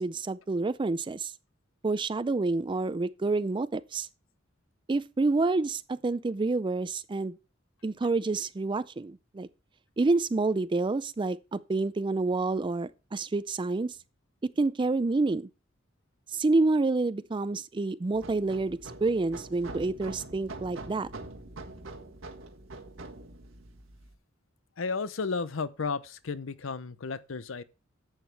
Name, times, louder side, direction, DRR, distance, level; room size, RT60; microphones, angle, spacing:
voice 1, 0.0-1.3 1.8-4.1 4.9-7.3 7.8-9.5 10.0-14.0 14.4-15.5 16.3-21.1, right 3 dB, 25° right, 0.4 m, -28 dB
sound 1, 18.1-24.1, right 2 dB, 80° right, 1.6 m, -44 dB
voice 2, 24.8-27.6, left 4 dB, 85° left, 0.7 m, -33 dB
11.0 x 8.2 x 3.3 m
head